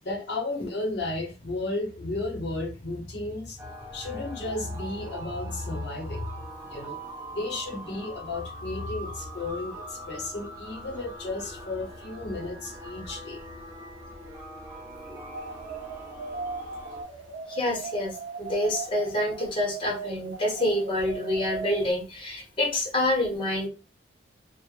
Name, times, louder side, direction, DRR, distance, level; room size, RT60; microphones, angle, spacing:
voice 1, 0.0-3.6 3.9-6.3 6.7-7.0 7.3-13.4, left 2 dB, 65° left, 0.7 m, -33 dB
sound 1, 3.6-17.0, right 1 dB, 15° right, 0.6 m, -42 dB
sound 2, 15.3-21.9, right 4 dB, 75° right, 0.5 m, -38 dB
voice 2, 17.5-23.7, left 1 dB, 30° left, 0.8 m, -27 dB
3.0 x 2.0 x 2.3 m
head